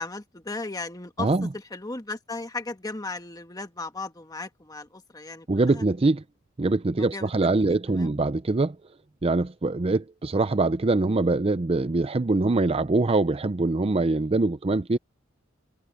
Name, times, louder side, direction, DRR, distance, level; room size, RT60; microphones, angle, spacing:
voice 1, 0.0-5.8 7.0-7.3 7.9-8.2, left 3 dB, 20° left, 1.6 m, -36 dB
voice 2, 1.2-1.5 5.5-6.2 6.6-8.8 9.2-15.0, right 2 dB, 30° right, 0.5 m, -23 dB
head